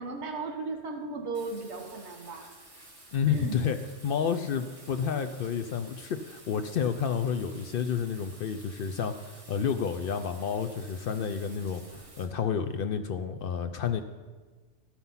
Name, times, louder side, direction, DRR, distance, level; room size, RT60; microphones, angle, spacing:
voice 1, 0.0-2.5 3.3-3.6, right 3 dB, 65° right, 2 dB, 1.6 m, -36 dB
Bathtub (filling or washing), 1.3-12.2, right 2 dB, 50° right, 2.5 m, -52 dB
voice 2, 3.1-3.8 4.0-11.8 12.2-14.0, left 7 dB, 60° left, 9 dB, 0.6 m, -30 dB
13.0 x 5.9 x 5.5 m, 1.4 s
omnidirectional pair, 1.3 m